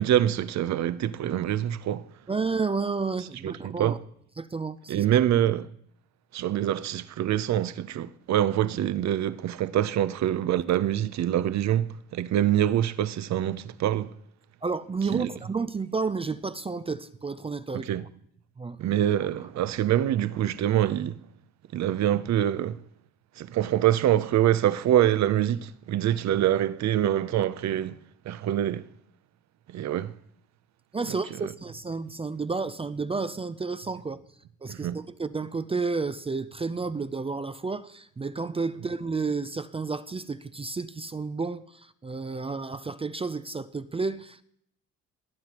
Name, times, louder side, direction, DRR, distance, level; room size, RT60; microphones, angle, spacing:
voice 1, 0.0-2.1 3.4-4.0 4.9-5.7 6.3-14.1 15.1-15.3 17.7-18.0 18.8-21.2 21.7-22.8 23.4-28.0 28.2-28.9 29.7-30.1 31.1-31.5 34.7-35.0, right 11 dB, 65° right, 0.7 m, -25 dB
voice 2, 2.3-4.0 4.4-5.0 14.6-17.9 18.6-18.8 30.9-34.2 34.6-44.4, right 4 dB, 20° right, 0.5 m, -31 dB
19.5 x 9.3 x 3.0 m
cardioid pair, 90°, 30 cm